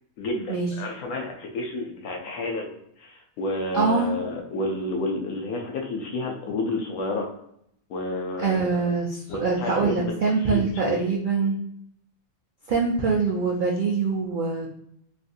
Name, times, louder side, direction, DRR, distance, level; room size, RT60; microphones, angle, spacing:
voice 1, 0.2-7.3 7.9-8.9 9.3-10.1 10.4-10.9, left 2 dB, 85° left, 1 dB, 1.1 m, -30 dB
voice 2, 3.7-4.1 8.4-11.6 12.7-14.7, right 4 dB, 85° right, -2 dB, 0.4 m, -24 dB
3.2 x 2.6 x 2.5 m, 0.72 s
omnidirectional pair, 1.5 m